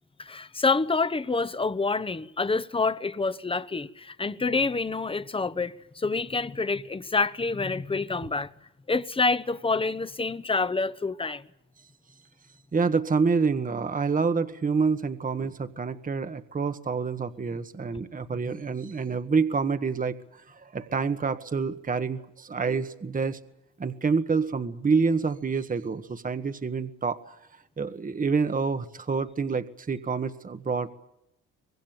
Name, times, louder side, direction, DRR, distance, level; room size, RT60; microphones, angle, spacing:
voice 1, 0.2-8.5 8.9-11.4, left 4 dB, 20° left, 1.1 m, -27 dB
voice 2, 12.7-23.4 23.8-27.4 27.8-30.9, right 5 dB, 25° right, 1.4 m, -27 dB
24.5 x 21.0 x 8.9 m
cardioid pair, 90°, 30 cm